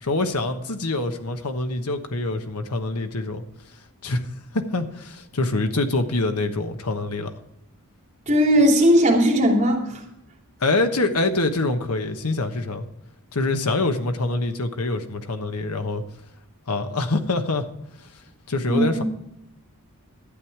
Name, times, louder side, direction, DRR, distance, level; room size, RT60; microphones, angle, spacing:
voice 1, 0.0-3.4 4.0-4.3 4.5-7.3 10.6-12.9 13.3-16.0 16.7-17.7 18.5-19.0, left 2 dB, 85° left, 7 dB, 1.2 m, -25 dB
voice 2, 8.3-10.0 18.6-19.0, equal, 35° right, -1 dB, 2.9 m, -18 dB
12.0 x 8.9 x 4.7 m, 0.84 s
head